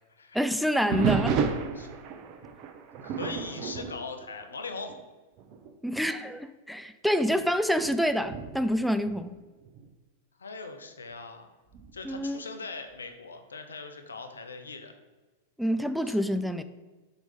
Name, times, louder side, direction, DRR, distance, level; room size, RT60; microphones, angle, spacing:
voice 1, 0.3-1.4 5.8-9.3 12.0-12.4 15.6-16.6, equal, ahead, 10 dB, 0.3 m, -27 dB
sound 1, 0.9-5.0 5.4-5.7 6.3-6.4 7.2-9.9 11.7-12.2, right 6 dB, 45° right, 0.7 m, -32 dB
voice 2, 3.0-4.9 10.4-11.5 11.9-14.9 16.0-16.2, left 4 dB, 85° left, 6 dB, 0.7 m, -40 dB
4.5 x 4.1 x 5.4 m, 1.2 s
hypercardioid pair, 100°, 0 cm